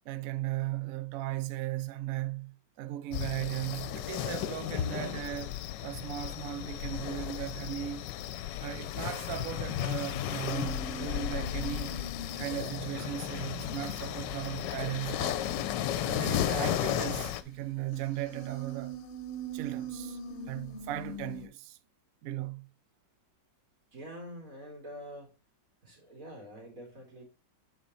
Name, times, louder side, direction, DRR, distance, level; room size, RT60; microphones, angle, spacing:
voice 1, 0.1-8.1 8.6-12.0 12.4-15.4 16.0-19.0 19.5-20.2 20.5-21.8 22.2-22.7, right 14 dB, 80° right, 0.7 m, -37 dB
sound 1, 3.1-17.4, left 11 dB, 75° left, 1.2 m, -34 dB
sound 2, 10.5-21.5, right 2 dB, 45° left, 1.1 m, -43 dB
voice 2, 23.9-25.3 25.8-27.2, equal, 50° right, 3.2 m, -46 dB
7.9 x 4.0 x 4.1 m
omnidirectional pair, 2.0 m